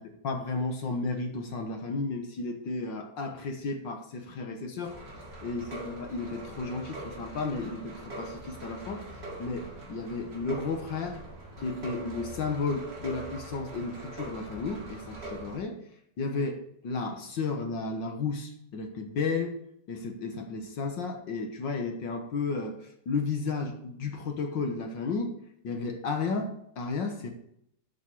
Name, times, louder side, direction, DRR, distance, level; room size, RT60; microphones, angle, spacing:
voice 1, 0.2-5.0 5.4-9.0 9.4-11.2 11.6-15.8 16.2-19.6 19.9-25.3 25.6-27.3, left 4 dB, 60° left, 4 dB, 1.2 m, -33 dB
sound 1, 4.8-15.6, right 2 dB, 25° right, 2.0 m, -43 dB
11.5 x 6.3 x 4.6 m, 0.74 s
omnidirectional pair, 3.4 m